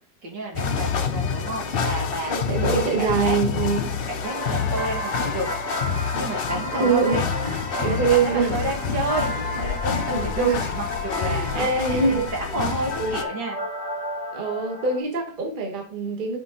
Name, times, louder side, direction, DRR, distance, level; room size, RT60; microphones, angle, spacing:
voice 1, 0.2-2.4 2.7-3.4 4.1-5.5 6.1-7.2 7.8-12.0 12.3-13.6, right 2 dB, 75° right, 2.7 m, -31 dB
sound 1, 0.5-13.2, left 6 dB, 55° left, 0.6 m, -28 dB
voice 2, 2.3-4.0 6.8-8.5 9.6-9.7 10.1-10.7 11.1-12.3 13.0-13.1 14.3-16.4, right 4 dB, 30° right, 1.3 m, -24 dB
sound 2, 4.2-15.0, left 1 dB, 20° left, 2.1 m, -33 dB
6.2 x 5.2 x 3.8 m
omnidirectional pair, 2.0 m